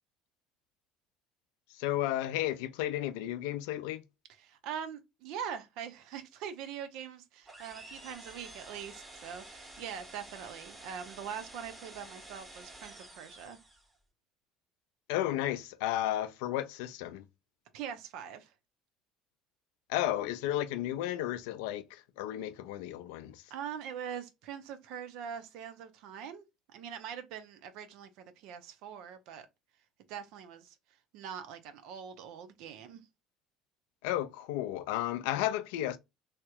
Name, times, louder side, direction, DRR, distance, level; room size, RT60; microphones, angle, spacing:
voice 1, 1.7-4.0 15.1-17.2 19.9-23.4 34.0-36.0, left 13 dB, 70° left, 0.4 m, -33 dB
voice 2, 4.4-13.6 17.7-18.5 23.5-26.4 26.7-29.5 30.1-30.8 31.1-33.0, right 8 dB, 65° right, 0.6 m, -43 dB
sound 1, 7.5-14.0, right 1 dB, 20° right, 1.2 m, -50 dB
3.2 x 2.8 x 2.3 m
hypercardioid pair, 65°, 0 cm